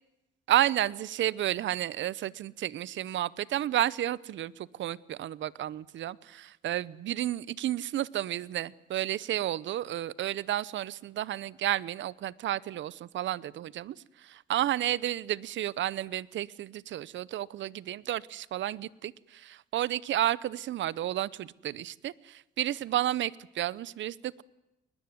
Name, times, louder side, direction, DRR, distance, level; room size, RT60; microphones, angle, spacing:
voice 1, 0.5-14.0 14.2-24.4, right 12 dB, 70° right, 21 dB, 0.8 m, -31 dB
21.5 x 20.5 x 9.5 m, 0.95 s
cardioid pair, 90°, 20 cm